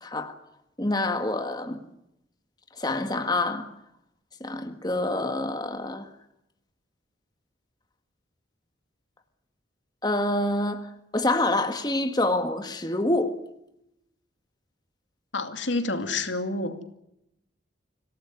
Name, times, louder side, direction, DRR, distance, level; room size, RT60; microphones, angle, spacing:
voice 1, 0.0-0.3 0.8-1.8 2.8-3.7 4.4-6.1 10.0-13.4, left 2 dB, 20° left, 1.8 m, -27 dB
voice 2, 15.3-16.8, left 2 dB, 80° left, 2.5 m, -28 dB
26.0 x 18.0 x 9.8 m
head